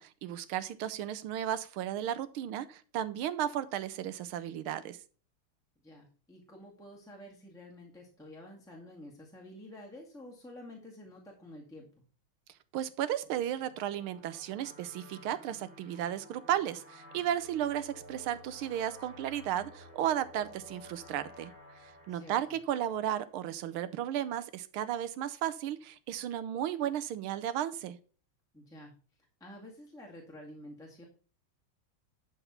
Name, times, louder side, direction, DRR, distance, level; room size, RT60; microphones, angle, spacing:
voice 1, 0.0-5.0 12.7-21.5 21.8-28.0, right 11 dB, 80° right, 14 dB, 1.5 m, -34 dB
voice 2, 5.8-11.9 22.1-22.4 28.5-28.9 29.4-31.0, left 1 dB, ahead, -3 dB, 1.8 m, -50 dB
sound 1, 13.3-23.7, equal, 20° right, 3.6 m, -54 dB
11.5 x 4.7 x 5.7 m, 0.38 s
omnidirectional pair, 2.3 m